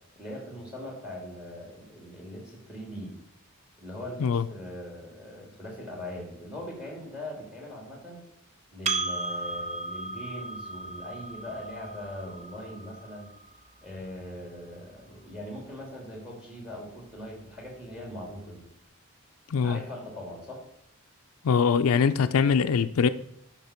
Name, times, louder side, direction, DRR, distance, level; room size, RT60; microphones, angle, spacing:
voice 1, 0.2-3.2 3.8-8.2 8.7-13.3 13.8-18.7 19.6-20.7, left 1 dB, 5° right, 2.8 m, -41 dB
Percussion, 8.9-13.7, right 3 dB, 30° right, 0.7 m, -35 dB
voice 2, 19.5-19.8 21.4-23.1, left 6 dB, 80° left, 0.4 m, -22 dB
10.0 x 5.9 x 4.4 m
head